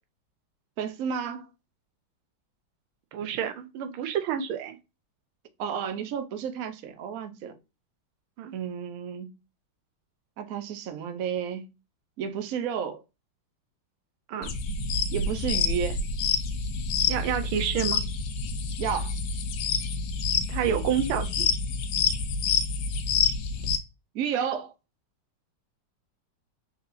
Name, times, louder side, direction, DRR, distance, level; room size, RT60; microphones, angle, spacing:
voice 1, 0.8-1.5 5.6-7.5 8.5-9.3 10.4-11.7 12.2-13.0 15.1-16.0 18.8-19.1 24.1-24.7, right 7 dB, 70° right, 0.8 m, -31 dB
voice 2, 3.1-4.8 8.4-8.5 14.3-14.5 17.1-18.0 20.5-21.5, right 9 dB, 90° right, 1.6 m, -29 dB
sound 1, 14.4-23.8, left 5 dB, 70° left, 1.2 m, -28 dB
4.1 x 4.1 x 2.6 m
omnidirectional pair, 2.3 m